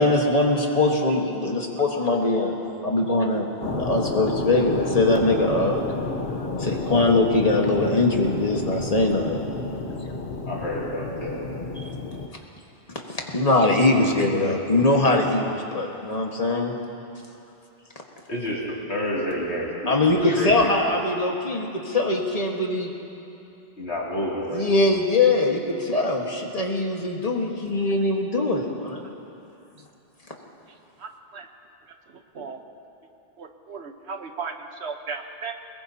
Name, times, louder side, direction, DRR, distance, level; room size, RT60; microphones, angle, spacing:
voice 1, 0.0-2.6 2.8-3.5 3.8-5.8 6.6-9.4 11.8-11.9 13.1-16.7 19.9-22.9 24.5-29.2, left 2 dB, 35° left, 0 dB, 1.5 m, -22 dB
sound 1, 3.6-12.3, left 3 dB, 55° left, 1.0 m, -31 dB
voice 2, 10.5-11.5 18.3-20.8 23.8-24.7, equal, 80° left, -5 dB, 3.0 m, -29 dB
voice 3, 33.4-34.5 34.8-35.5, right 5 dB, 85° right, 5 dB, 1.3 m, -34 dB
22.5 x 20.5 x 2.8 m, 2.8 s
omnidirectional pair, 1.1 m